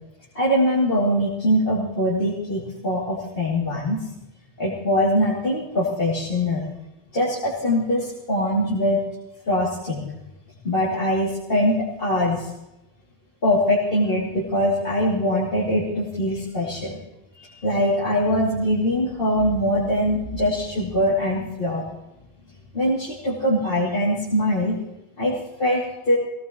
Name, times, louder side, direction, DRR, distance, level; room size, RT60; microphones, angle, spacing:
voice 1, 0.3-4.0 4.6-6.7 7.1-9.0 9.5-10.1 10.6-12.5 13.4-17.0 17.4-21.8 22.7-24.8 25.2-26.2, left 1 dB, 50° left, -7 dB, 3.2 m, -22 dB
22.5 x 18.0 x 3.1 m, 0.93 s
omnidirectional pair, 1.2 m